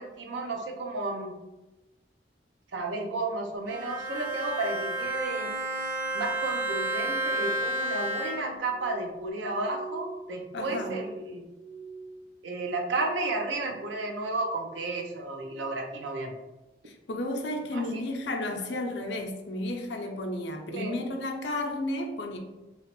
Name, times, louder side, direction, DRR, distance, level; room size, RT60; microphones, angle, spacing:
voice 1, 0.0-1.3 2.7-5.5 6.1-11.4 12.4-16.3 17.7-18.0 20.7-21.0, right 2 dB, 85° right, 0.5 m, -32 dB
Bowed string instrument, 3.6-8.7, right 1 dB, 45° right, 0.9 m, -31 dB
Glass, 8.7-13.2 13.5-14.2 14.6-15.1 15.7-16.0, right 4 dB, 10° left, 0.5 m, -44 dB
voice 2, 10.5-11.0 16.9-22.4, left 1 dB, 75° left, 0.5 m, -32 dB
3.0 x 2.9 x 3.0 m
head